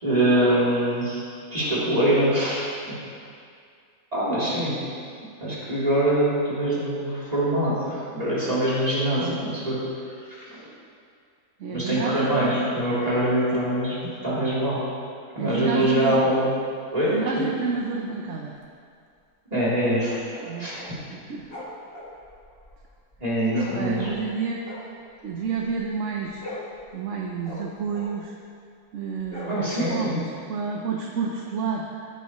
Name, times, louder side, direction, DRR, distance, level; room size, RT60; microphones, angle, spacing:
voice 1, 0.0-2.9 4.1-4.8 5.4-9.8 10.5-10.6 11.7-14.8 15.3-16.5 16.9-17.1 19.5-20.8 23.2-24.1 29.5-30.2, right 1 dB, 25° right, -9 dB, 3.3 m, -24 dB
voice 2, 11.6-12.7 15.4-16.2 17.1-18.5 20.4-20.8 21.1-21.5 23.5-24.6 25.2-26.4 26.9-28.3 28.9-30.2 30.5-31.8, right 5 dB, 55° right, 0 dB, 1.1 m, -29 dB
sound 1, 17.0-17.3 19.9-21.0 21.3-24.3 24.6-25.9 26.2-28.3 29.2-30.0, left 2 dB, 35° left, 1.9 m, -41 dB
15.0 x 10.5 x 3.1 m, 2.3 s
omnidirectional pair, 1.7 m